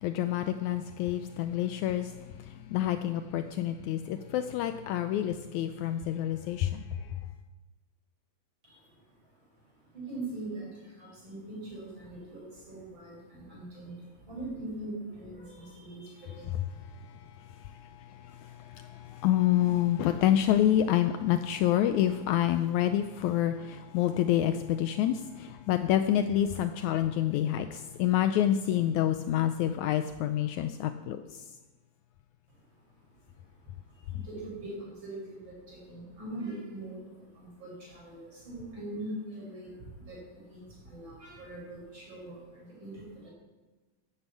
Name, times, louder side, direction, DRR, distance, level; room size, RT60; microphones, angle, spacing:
voice 1, 0.0-2.1 2.7-6.8 18.8-31.2, left 11 dB, 85° left, 10 dB, 1.7 m, -27 dB
voice 2, 8.6-16.8 32.5-32.6 33.0-33.1 33.5-43.3, right 2 dB, 35° right, -4 dB, 5.6 m, -42 dB
11.5 x 9.8 x 8.3 m, 1.2 s
omnidirectional pair, 4.0 m